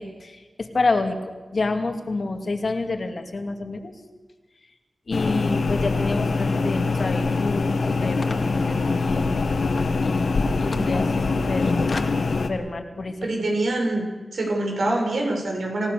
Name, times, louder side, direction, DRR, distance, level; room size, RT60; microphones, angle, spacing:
voice 1, 0.0-3.9 5.1-12.0 12.5-13.2, left 3 dB, 55° left, 5 dB, 2.4 m, -28 dB
sound 1, 5.1-12.5, left 3 dB, 80° left, 1.9 m, -23 dB
voice 2, 13.2-14.0 14.3-15.9, right 2 dB, 85° right, 0 dB, 6.8 m, -25 dB
28.0 x 16.5 x 6.9 m, 1.3 s
wide cardioid pair, 115°, 0 cm